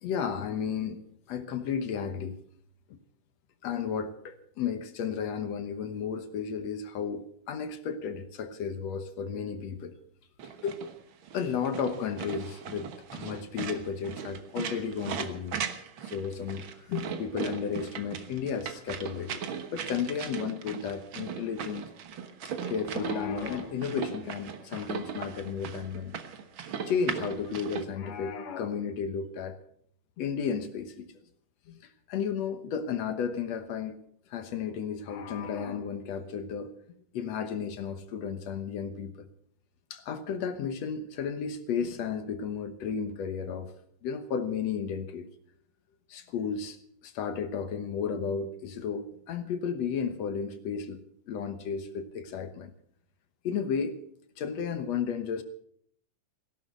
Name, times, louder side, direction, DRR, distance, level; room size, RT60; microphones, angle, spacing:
voice 1, 0.0-1.0 1.3-2.4 3.6-9.9 10.6-10.9 11.3-15.6 16.0-19.4 19.7-21.9 22.7-26.2 26.9-29.6 30.2-31.1 31.7-34.0 34.3-36.7 37.1-39.3 39.9-43.7 44.0-45.3 46.1-46.8 47.0-52.7 53.4-54.0 54.4-55.4, left 6 dB, 65° left, 2.0 m, -33 dB
sound 1, 10.4-27.8, right 7 dB, 60° right, 1.3 m, -38 dB
17.0 x 11.5 x 6.6 m
omnidirectional pair, 3.8 m